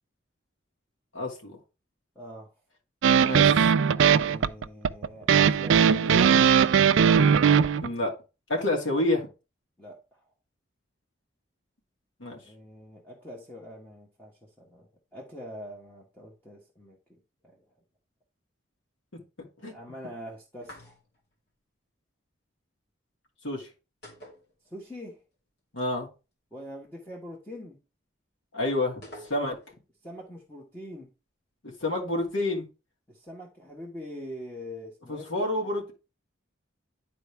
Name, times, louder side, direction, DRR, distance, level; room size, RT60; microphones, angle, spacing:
voice 1, 1.1-1.6 3.2-3.7 7.8-8.1 8.5-9.3 12.2-12.4 19.6-19.7 23.4-23.7 25.7-26.1 28.5-29.6 31.8-32.6 35.1-35.9, left 2 dB, 75° left, 0 dB, 2.5 m, -28 dB
voice 2, 2.1-2.5 4.2-6.4 9.8-10.3 12.4-17.6 19.6-20.9 24.7-25.2 26.5-27.8 30.0-31.1 33.1-35.3 35.6-35.7, equal, 10° left, -4 dB, 1.3 m, -43 dB
sound 1, 3.0-7.9, right 7 dB, 75° right, 0.4 m, -19 dB
sound 2, 20.6-21.3 24.0-25.1 25.3-25.4 29.0-29.8, equal, 55° left, 2.8 m, -48 dB
10.5 x 4.2 x 3.4 m, 0.29 s
head